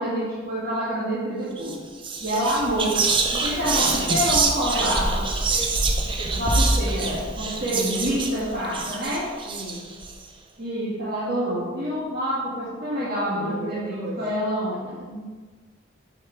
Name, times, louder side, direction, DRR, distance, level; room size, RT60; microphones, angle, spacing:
voice 1, 0.0-1.8 2.2-3.0 3.3-5.1 6.4-9.3 10.6-15.4, equal, 50° right, -9 dB, 1.6 m, -27 dB
Whispering, 1.6-1.8 2.0-10.1, right 3 dB, 25° right, 0.5 m, -25 dB
voice 2, 3.6-4.1 4.7-5.0 5.5-6.5 9.4-9.9 13.3-14.2 14.7-15.1, right 1 dB, 85° right, -7 dB, 2.5 m, -38 dB
7.8 x 5.0 x 4.4 m, 1.4 s
head